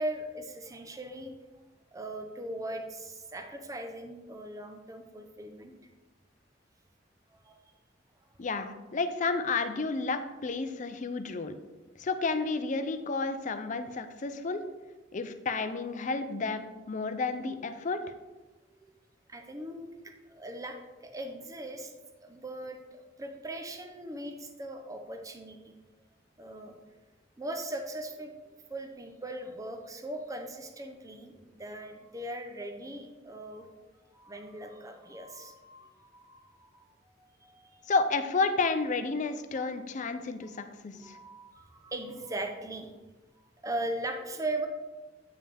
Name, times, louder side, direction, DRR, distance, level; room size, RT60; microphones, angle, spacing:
voice 1, 0.0-1.3 1.9-5.7 7.3-7.6 19.3-21.9 22.2-25.7 26.4-26.7 27.4-28.3 28.7-33.7 34.1-37.9 39.5-39.7 40.9-43.1 43.6-44.7, right 1 dB, 20° right, 4 dB, 0.7 m, -39 dB
voice 2, 8.4-11.6 12.0-14.6 15.1-18.0 37.9-41.2, left 4 dB, 40° left, 9 dB, 0.5 m, -31 dB
8.6 x 5.4 x 3.4 m, 1.1 s
head